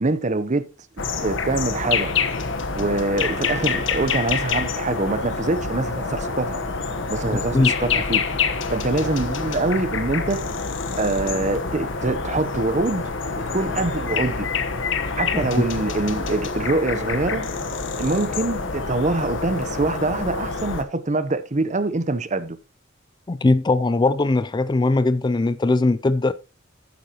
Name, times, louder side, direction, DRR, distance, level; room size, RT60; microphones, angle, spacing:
voice 1, 0.0-0.7 1.0-2.1 2.8-6.6 7.1-8.2 8.7-10.5 11.0-13.0 13.4-14.5 15.2-17.5 18.0-22.6, right 2 dB, 40° right, 0.9 m, -24 dB
sound 1, 1.0-20.8, left 5 dB, 75° left, 1.2 m, -27 dB
voice 2, 23.3-26.3, left 2 dB, 25° left, 0.4 m, -20 dB
11.5 x 9.4 x 3.0 m
head